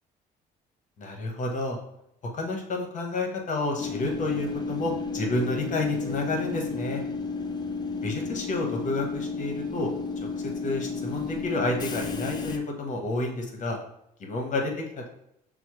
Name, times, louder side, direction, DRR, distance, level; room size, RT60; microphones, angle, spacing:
voice 1, 1.0-1.8 2.3-7.0 8.0-13.8 14.2-15.1, left 2 dB, 50° left, 2 dB, 1.0 m, -30 dB
Train / Subway metro underground, 3.8-12.6, left 4 dB, 25° left, 0.4 m, -32 dB
6.0 x 2.1 x 3.0 m, 0.78 s
cardioid pair, 110°, 17 cm